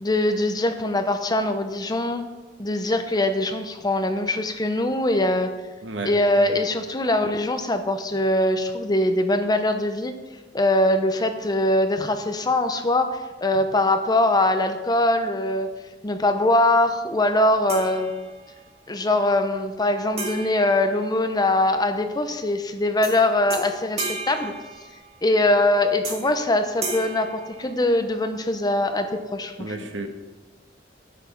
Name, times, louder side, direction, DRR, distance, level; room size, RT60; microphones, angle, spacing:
voice 1, 0.0-2.3 2.6-5.5 6.0-10.1 10.5-15.7 16.0-18.1 18.9-24.5 25.2-29.9, left 1 dB, 20° left, 7 dB, 0.8 m, -22 dB
voice 2, 5.8-6.6 29.6-30.1, right 2 dB, 85° right, 5 dB, 1.3 m, -33 dB
sound 1, 17.7-18.7 20.2-21.7 23.0-23.2 23.5-25.3 26.0-26.4 26.8-28.2, right 3 dB, 35° right, 1.9 m, -35 dB
10.0 x 7.1 x 5.9 m, 1.2 s
head